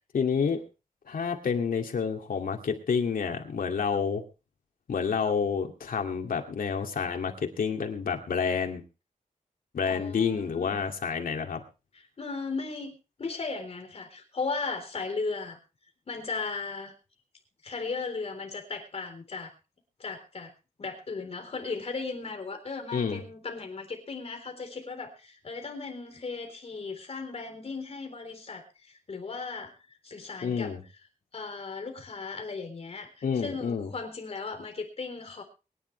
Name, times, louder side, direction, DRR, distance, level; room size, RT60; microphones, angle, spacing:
voice 1, 0.1-0.6 1.1-4.2 4.9-8.8 9.7-11.6 22.9-23.2 30.4-30.8 33.2-33.9, left 6 dB, 90° left, 4 dB, 2.4 m, -29 dB
voice 2, 9.8-10.9 11.9-12.9 13.2-15.6 16.1-16.9 17.6-19.5 20.0-20.5 20.8-29.7 30.0-30.7 31.3-35.4, left 4 dB, 45° left, 4 dB, 3.9 m, -36 dB
23.0 x 10.5 x 3.3 m, 0.31 s
wide cardioid pair, 170°, 14 cm